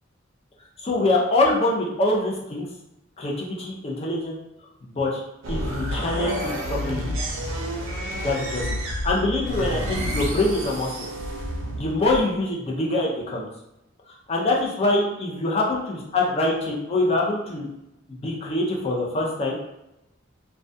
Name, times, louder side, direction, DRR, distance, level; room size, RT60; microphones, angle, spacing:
voice 1, 0.8-2.7 3.2-4.4 4.8-5.2 5.5-7.2 8.2-11.1 11.7-13.5 14.1-17.7 18.1-19.6, left 2 dB, 30° left, -2 dB, 0.5 m, -24 dB
sound 1, 5.4-12.4, equal, 70° right, 0.5 m, -29 dB
2.3 x 2.2 x 2.6 m, 0.88 s
head